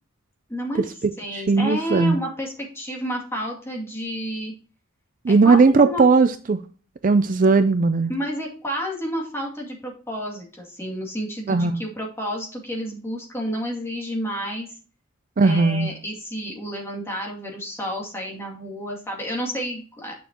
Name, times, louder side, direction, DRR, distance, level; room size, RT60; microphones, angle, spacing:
voice 1, 0.5-0.9 1.2-4.5 5.3-6.0 8.1-14.7 15.4-20.2, equal, 10° left, -1 dB, 2.4 m, -30 dB
voice 2, 1.3-2.2 5.2-6.6 7.0-8.1 11.5-11.8 15.4-15.9, right 4 dB, 40° right, 11 dB, 0.4 m, -17 dB
9.2 x 6.7 x 2.9 m, 0.39 s
head